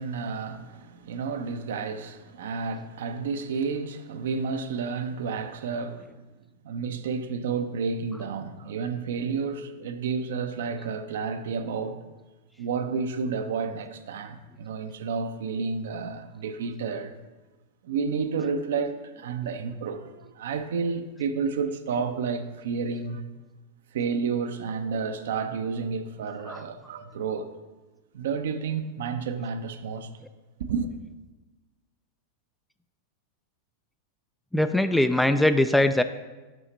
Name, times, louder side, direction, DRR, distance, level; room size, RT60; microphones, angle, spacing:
voice 1, 0.0-6.1 6.6-12.0 12.6-17.1 17.8-23.2 23.9-27.5 28.1-30.1 30.6-30.9, right 5 dB, 60° right, 0.6 m, -31 dB
voice 2, 34.5-36.0, left 1 dB, 5° left, 0.3 m, -21 dB
6.1 x 5.6 x 5.3 m
figure-of-eight pair, 90°, 0 cm